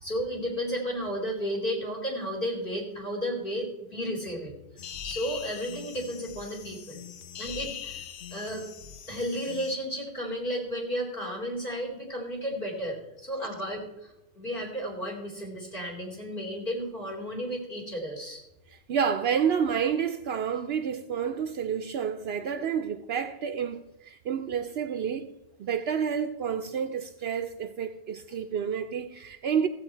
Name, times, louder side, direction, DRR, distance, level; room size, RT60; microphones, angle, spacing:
voice 1, 0.0-4.5 5.0-7.1 7.4-8.7 9.1-18.4, equal, 50° left, 3.2 m, -33 dB
sound 1, 4.8-9.8, left 9 dB, 80° left, 0.9 m, -41 dB
voice 2, 18.9-25.3 25.6-29.7, right 7 dB, 70° right, 0.8 m, -29 dB
15.0 x 8.1 x 4.4 m
omnidirectional pair, 1.1 m